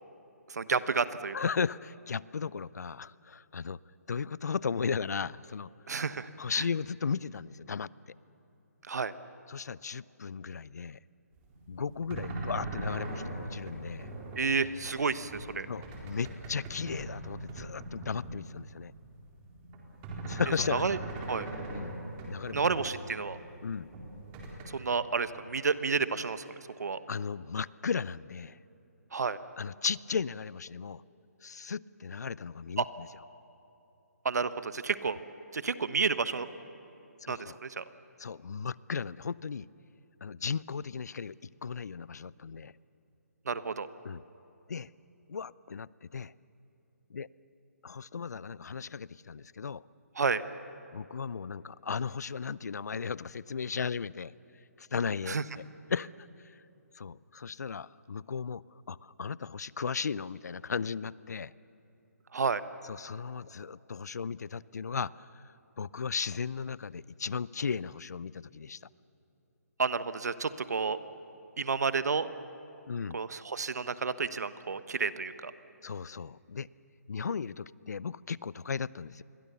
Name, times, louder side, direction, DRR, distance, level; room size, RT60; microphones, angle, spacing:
voice 1, 0.5-1.4 5.9-6.6 8.9-9.1 14.4-15.7 20.7-21.0 21.3-21.5 22.5-23.4 24.6-26.4 26.8-27.0 29.1-29.4 32.8-32.9 34.2-35.2 35.5-36.5 37.3-37.8 43.5-43.9 50.2-50.4 55.3-55.4 62.3-62.6 69.8-71.0 71.6-72.3 73.1-75.5, right 5 dB, 75° right, 13 dB, 1.1 m, -30 dB
voice 2, 1.3-3.8 4.1-5.7 6.4-7.9 9.5-11.0 11.7-14.1 15.7-18.9 20.3-20.9 21.7-21.9 22.2-22.6 23.6-23.9 27.1-28.6 29.6-31.0 31.4-33.1 37.3-37.6 38.2-39.7 40.2-42.7 44.0-44.2 44.7-44.9 45.3-46.3 47.1-47.3 47.8-49.8 50.9-54.3 54.8-55.3 55.9-56.6 56.9-61.5 62.8-68.8 72.9-73.2 75.8-76.7 77.1-79.2, left 6 dB, 75° left, 21 dB, 0.5 m, -36 dB
sound 1, 11.4-18.6 18.9-22.9 23.3-24.6, right 2 dB, 25° right, 4.1 m, -40 dB
28.5 x 22.5 x 6.9 m, 3.0 s
hypercardioid pair, 155°, 9 cm